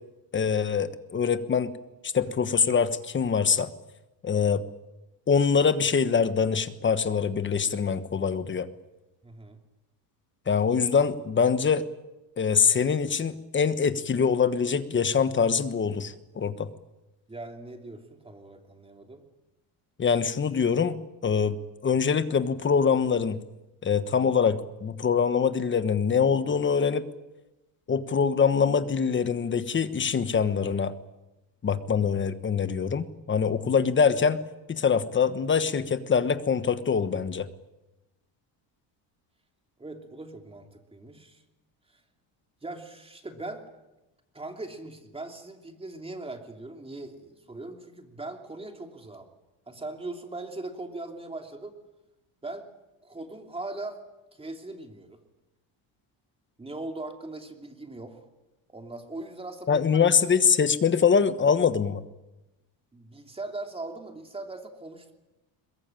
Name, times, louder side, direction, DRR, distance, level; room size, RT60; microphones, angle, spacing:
voice 1, 0.3-1.7 2.0-3.7 4.2-4.6 5.3-8.7 10.5-11.8 12.4-16.7 20.0-23.4 23.8-27.0 27.9-30.9 31.6-34.4 34.7-37.5 59.7-62.0, left 6 dB, 25° left, 12 dB, 1.3 m, -24 dB
voice 2, 9.2-9.6 17.3-19.2 39.8-41.4 41.9-42.0 42.6-43.6 44.3-49.3 49.7-51.7 52.4-52.7 53.0-54.0 54.3-55.2 56.6-58.2 58.7-60.0 62.9-65.1, right 2 dB, 10° right, 4 dB, 3.0 m, -40 dB
22.5 x 22.0 x 9.1 m, 1.0 s
cardioid pair, 150°, 45 cm